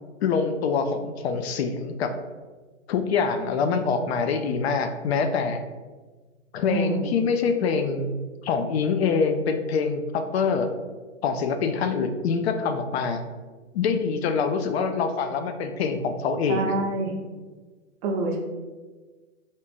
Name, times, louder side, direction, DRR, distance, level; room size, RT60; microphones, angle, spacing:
voice 1, 0.2-2.1 2.9-5.6 6.5-8.1 8.4-10.7 11.2-13.2 13.7-16.7, left 5 dB, 55° left, 7 dB, 0.5 m, -25 dB
voice 2, 6.7-7.1 16.5-17.1 18.0-18.4, right 2 dB, 25° right, 1 dB, 0.5 m, -26 dB
3.5 x 2.4 x 4.1 m, 1.3 s
hypercardioid pair, 120°, 39 cm